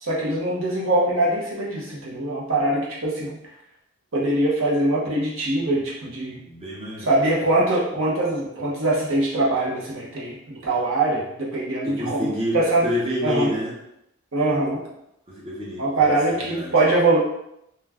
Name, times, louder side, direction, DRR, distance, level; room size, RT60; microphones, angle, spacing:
voice 1, 0.0-3.4 4.1-6.4 7.0-12.9 13.2-13.5 14.3-14.8 15.8-17.2, right 2 dB, 65° right, -4 dB, 0.8 m, -22 dB
voice 2, 6.5-7.1 11.8-13.7 15.3-16.7, left 1 dB, 25° right, -6 dB, 0.7 m, -29 dB
2.3 x 2.2 x 3.4 m, 0.79 s
head